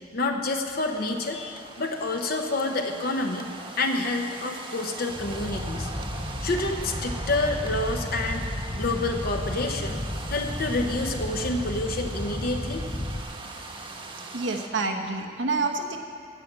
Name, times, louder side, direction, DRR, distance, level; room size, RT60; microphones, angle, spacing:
voice 1, 0.1-3.5 3.8-5.9 6.4-10.0 10.3-12.9, left 2 dB, 55° left, 4 dB, 0.8 m, -28 dB
sound 1, 0.9-14.7, right 3 dB, 30° right, 1.0 m, -41 dB
sound 2, 5.1-13.2, left 1 dB, 20° left, 0.6 m, -33 dB
voice 2, 14.3-16.0, right 3 dB, 80° right, 4 dB, 1.1 m, -28 dB
16.0 x 5.9 x 7.9 m, 2.3 s
head